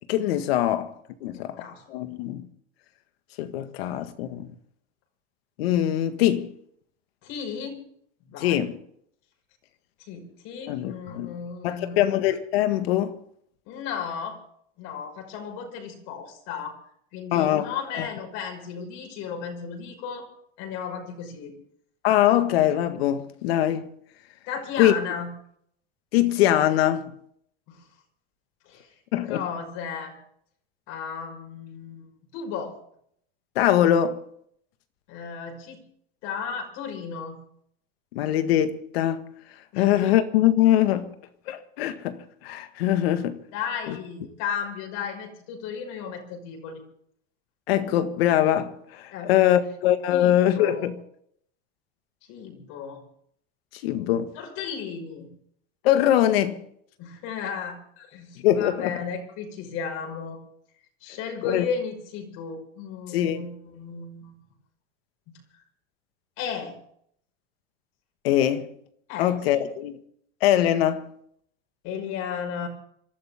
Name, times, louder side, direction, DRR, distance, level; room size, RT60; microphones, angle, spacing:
voice 1, 0.1-0.9 1.2-1.6 1.9-2.5 3.4-4.5 5.6-6.5 8.4-8.8 10.7-11.3 11.6-13.1 17.3-17.7 17.9-18.1 22.0-23.9 24.8-24.9 26.1-27.1 29.1-29.4 33.6-34.2 38.1-39.3 39.8-41.1 41.5-43.4 43.9-44.0 47.7-50.9 53.7-54.3 55.8-56.6 58.4-59.0 61.4-61.7 63.1-63.5 68.2-68.7 69.2-70.0 70.4-71.1, left 12 dB, 80° left, 1.8 m, -22 dB
voice 2, 1.3-1.8 7.2-7.8 8.3-8.7 10.1-12.1 13.7-14.4 14.8-16.8 17.1-20.3 20.6-21.5 24.5-25.3 27.7-27.8 28.7-28.9 29.3-30.1 30.9-32.1 32.3-32.8 35.1-35.8 36.2-37.4 39.7-40.1 43.5-46.8 49.1-49.6 50.1-50.9 52.3-53.0 54.3-55.3 57.0-60.4 61.0-64.3 65.3-65.4 66.4-66.7 69.1-69.6 71.8-72.7, left 6 dB, 60° left, 6.1 m, -34 dB
27.0 x 13.0 x 3.7 m
supercardioid pair, 110°, 30 cm